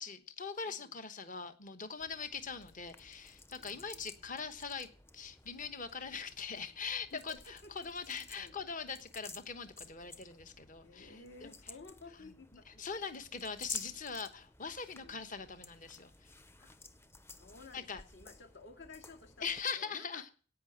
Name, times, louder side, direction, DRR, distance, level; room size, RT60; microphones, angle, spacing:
voice 1, 0.0-11.1 11.4-11.5 12.7-16.3 17.7-18.0 19.4-20.3, left 5 dB, 40° left, 9 dB, 1.1 m, -42 dB
sound 1, 2.0-19.6, left 3 dB, 10° left, 0.6 m, -52 dB
voice 2, 3.6-4.0 7.1-8.6 10.8-13.0 13.3-13.5 15.0-15.2 16.6-16.7 17.3-20.3, left 3 dB, 60° left, 4 dB, 2.2 m, -55 dB
17.0 x 5.8 x 7.9 m, 0.40 s
head